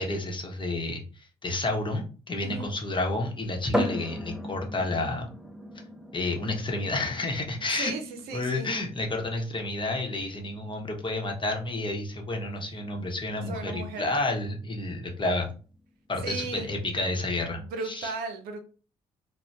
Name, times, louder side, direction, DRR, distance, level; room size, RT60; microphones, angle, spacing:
voice 1, 0.0-5.3 6.1-7.9 8.3-15.5 16.1-18.1, left 2 dB, 35° left, 2 dB, 0.9 m, -30 dB
sound 1, 3.7-17.2, equal, 5° right, 0.5 m, -39 dB
voice 2, 7.7-8.7 13.0-14.1 14.8-14.9 16.2-16.7 17.5-18.6, right 4 dB, 80° right, 6 dB, 0.6 m, -36 dB
2.5 x 2.2 x 3.2 m, 0.37 s
hypercardioid pair, 50°, 15 cm